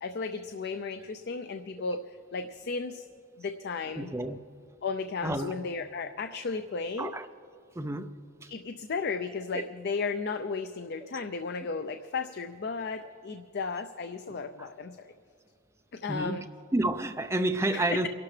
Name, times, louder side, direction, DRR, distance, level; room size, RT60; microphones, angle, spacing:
voice 1, 0.0-3.1 3.4-4.1 4.8-7.1 8.5-15.1 15.9-16.5 17.7-18.1, left 4 dB, 50° left, 0.5 m, -34 dB
voice 2, 4.0-4.4 5.2-5.5 7.0-7.3 7.8-8.1 9.5-9.6 14.6-14.7 16.1-16.4 16.7-18.1, right 1 dB, 15° right, 0.5 m, -29 dB
30.0 x 11.5 x 3.3 m
head